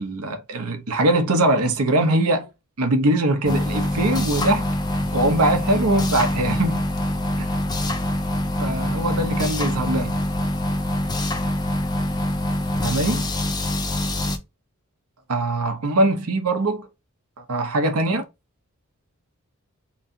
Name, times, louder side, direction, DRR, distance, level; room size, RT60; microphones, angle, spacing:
voice 1, 0.0-2.5 2.8-6.8 7.4-7.5 8.6-10.2 12.8-13.3 15.3-16.9 17.4-18.2, right 2 dB, 80° right, 0.8 m, -22 dB
sound 1, 3.4-14.4, left 1 dB, 20° left, 0.5 m, -24 dB
3.1 x 2.7 x 3.7 m
head